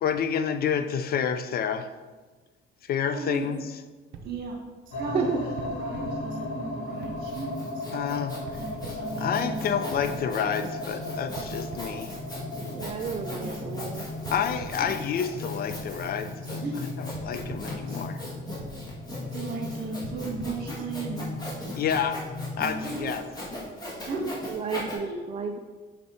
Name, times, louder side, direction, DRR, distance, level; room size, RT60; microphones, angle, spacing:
voice 1, 0.0-1.9 2.8-3.6 7.9-8.4 9.2-12.1 14.3-18.2 21.8-22.3 22.6-23.2, left 8 dB, 50° left, 10 dB, 0.4 m, -29 dB
voice 2, 3.0-3.5 4.2-4.6 4.9-7.6 8.5-9.9 12.0-12.2 13.4-13.6 14.8-14.9 16.6-16.8 19.3-21.4 22.6-23.1 24.1-24.3 25.0-25.2, right 3 dB, 50° right, 0 dB, 1.7 m, -36 dB
sound 1, 4.1-5.0 5.6-6.7 7.0-7.9 8.5-9.6 9.9-10.8 11.4-12.5 12.8-13.7 14.2-15.4 15.7-16.6 17.1-18.3 18.6-19.5 20.0-21.2, right 4 dB, 70° right, 0.7 m, -46 dB
sound 2, 4.9-22.6, left 1 dB, 85° left, 1.3 m, -36 dB
voice 3, 5.1-5.5 12.7-14.1 24.5-25.6, right 5 dB, 30° right, 4 dB, 0.4 m, -31 dB
Sawing, 6.9-24.9, left 1 dB, 20° left, 1.8 m, -40 dB
5.8 x 5.0 x 4.1 m, 1.3 s
cardioid pair, 135°, 21 cm